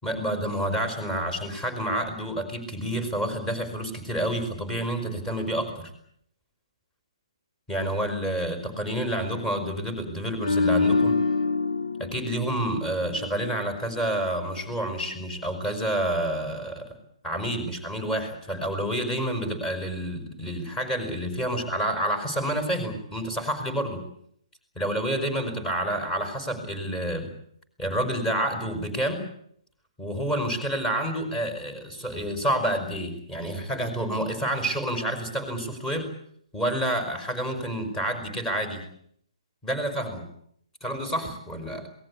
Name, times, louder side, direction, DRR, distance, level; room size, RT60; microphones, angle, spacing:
voice 1, 0.0-5.9 7.7-11.2 12.0-16.9 17.2-24.0 24.8-27.3 27.8-29.2 30.0-36.1 36.5-38.8 39.6-40.3 40.8-41.9, right 1 dB, 10° left, 8 dB, 5.2 m, -29 dB
sound 1, 10.4-13.7 14.0-14.2, left 3 dB, 65° left, 1.3 m, -26 dB
27.0 x 19.5 x 8.6 m, 0.70 s
figure-of-eight pair, 135°, 3 cm